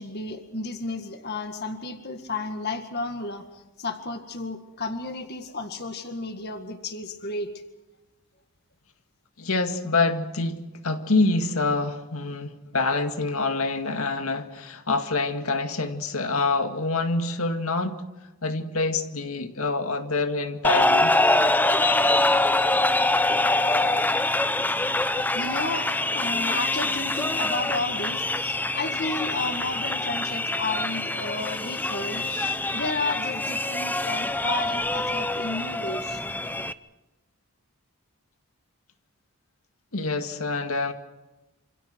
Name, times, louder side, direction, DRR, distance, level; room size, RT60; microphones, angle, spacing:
voice 1, 0.0-7.5 25.3-36.2, left 3 dB, 45° left, 6 dB, 1.9 m, -33 dB
voice 2, 9.4-18.0 18.4-21.2 39.9-40.9, left 3 dB, 75° left, 6 dB, 2.2 m, -26 dB
sound 1, 20.6-36.7, left 2 dB, 10° left, 0.7 m, -24 dB
28.5 x 27.5 x 4.6 m, 1.1 s
head